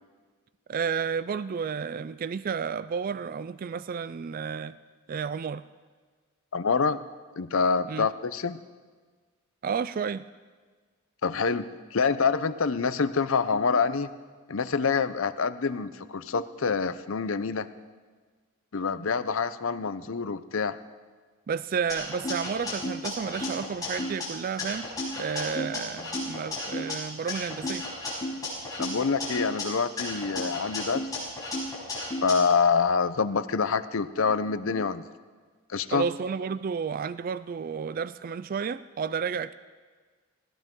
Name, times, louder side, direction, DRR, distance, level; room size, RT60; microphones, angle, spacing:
voice 1, 0.7-4.8 5.1-5.6 7.9-8.1 9.6-10.3 21.5-24.9 25.2-27.9 35.9-39.5, right 6 dB, 40° right, 15 dB, 0.3 m, -31 dB
voice 2, 6.5-7.0 7.4-8.6 11.2-14.1 14.5-17.7 18.7-20.8 28.8-31.1 32.2-35.0 35.7-36.1, left 5 dB, 65° left, 13 dB, 0.6 m, -26 dB
sound 1, 21.9-24.2 24.6-26.9 27.3-29.6 30.0-32.3, left 2 dB, 15° left, 5.6 m, -33 dB
19.5 x 16.0 x 3.8 m, 1.5 s
head